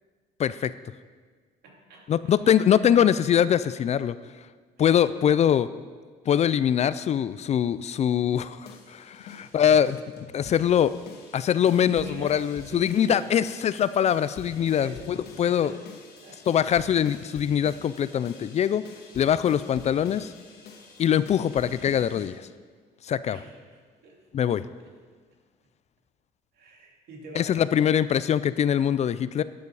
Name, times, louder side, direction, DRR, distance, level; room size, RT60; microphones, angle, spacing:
voice 1, 0.4-0.7 2.1-4.2 4.8-5.7 6.3-10.0 10.3-10.9 11.3-15.7 16.5-18.8 19.2-20.3 21.0-22.5 23.0-23.4 24.3-24.6 27.4-29.4, left 9 dB, 40° left, 15 dB, 0.4 m, -23 dB
voice 2, 1.6-2.9 4.8-5.1 9.4-9.6 11.7-13.3 14.7-15.8 16.2-16.7 23.3-23.5 24.0-24.5 24.8-24.9 26.5-27.6, right 2 dB, 70° right, 0 dB, 2.7 m, -44 dB
sound 1, 8.3-22.3, left 5 dB, 70° left, 2.1 m, -47 dB
12.0 x 9.3 x 4.8 m, 1.5 s
cardioid pair, 110°, 17 cm